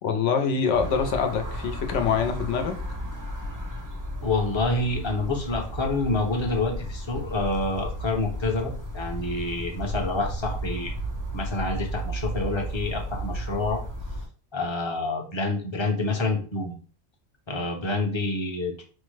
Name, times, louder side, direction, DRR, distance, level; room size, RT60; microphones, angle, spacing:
voice 1, 0.0-2.8, left 6 dB, 80° left, 6 dB, 0.9 m, -25 dB
sound 1, 0.7-14.3, right 1 dB, 25° right, 0.4 m, -34 dB
voice 2, 4.2-10.9 11.3-13.8 14.5-16.7 17.5-18.8, left 2 dB, 30° left, 1 dB, 0.6 m, -27 dB
4.4 x 2.1 x 3.1 m, 0.39 s
omnidirectional pair, 1.2 m